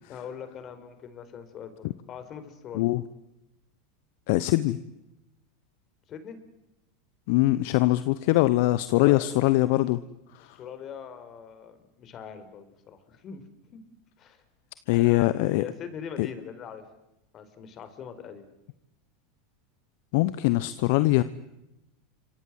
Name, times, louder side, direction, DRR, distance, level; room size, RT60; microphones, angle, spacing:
voice 1, 0.1-2.9 6.1-6.4 8.9-9.3 10.4-13.8 14.2-14.4 14.9-16.9 17.3-18.5, left 7 dB, 40° left, 11 dB, 4.8 m, -42 dB
voice 2, 4.3-4.8 7.3-10.0 10.3-10.6 14.9-15.6 16.2-16.3 20.1-21.2, left 18 dB, 60° left, 15 dB, 1.0 m, -22 dB
29.0 x 26.0 x 7.8 m, 0.91 s
hypercardioid pair, 90°, 0 cm